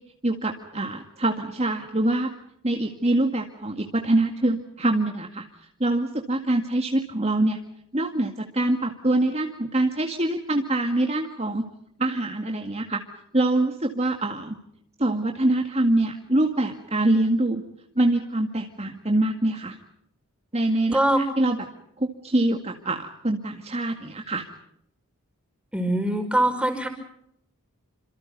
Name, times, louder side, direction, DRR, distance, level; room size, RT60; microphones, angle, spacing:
voice 1, 0.2-2.3 2.6-5.4 5.8-7.6 7.9-11.6 12.0-13.0 13.3-14.6 15.0-17.6 18.0-19.8 20.5-21.6 22.0-24.4, right 1 dB, 30° right, 3 dB, 2.0 m, -24 dB
voice 2, 25.7-26.9, right 1 dB, 5° right, 6 dB, 5.1 m, -22 dB
28.0 x 27.0 x 5.4 m, 0.74 s
head